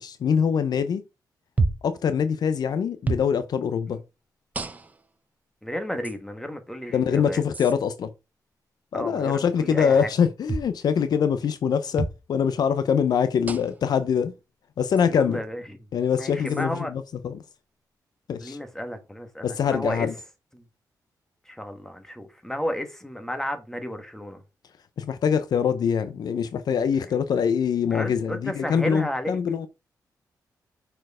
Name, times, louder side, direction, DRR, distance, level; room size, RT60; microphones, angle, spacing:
voice 1, 0.0-1.0 1.8-4.0 6.9-8.1 8.9-14.3 14.8-15.4 15.9-17.4 18.3-18.6 19.4-20.1 25.0-29.7, left 7 dB, 70° left, 0.6 m, -24 dB
sound 1, 1.6-1.9 3.0-3.3 4.5-5.1 6.0-6.2 7.5-7.7 10.5-10.7 12.0-12.2 13.5-13.8 15.0-15.1 16.5-16.7, right 3 dB, 20° right, 0.7 m, -28 dB
voice 2, 5.6-7.4 8.9-10.1 15.1-15.8 16.2-16.9 18.4-20.1 20.5-20.6 21.4-24.4 27.0-27.1 27.9-29.4, equal, 5° left, 1.4 m, -32 dB
6.4 x 4.5 x 4.8 m
wide cardioid pair, 120°, 7 cm